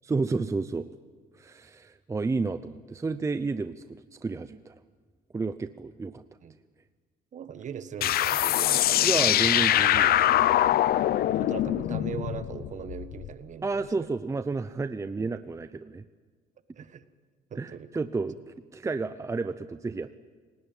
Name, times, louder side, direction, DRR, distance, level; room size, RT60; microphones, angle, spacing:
voice 1, 0.0-0.9 1.3-4.7 5.3-6.2 9.0-10.4 13.6-16.0 17.6-20.1, right 3 dB, 15° right, 11 dB, 0.7 m, -31 dB
voice 2, 7.3-9.1 11.3-14.1 15.1-15.3 16.7-17.0 17.5-17.9, right 8 dB, 45° right, 11 dB, 1.5 m, -40 dB
sound 1, 8.0-13.3, left 12 dB, 65° left, 0.8 m, -23 dB
28.5 x 18.0 x 9.1 m, 1.5 s
cardioid pair, 110°, 17 cm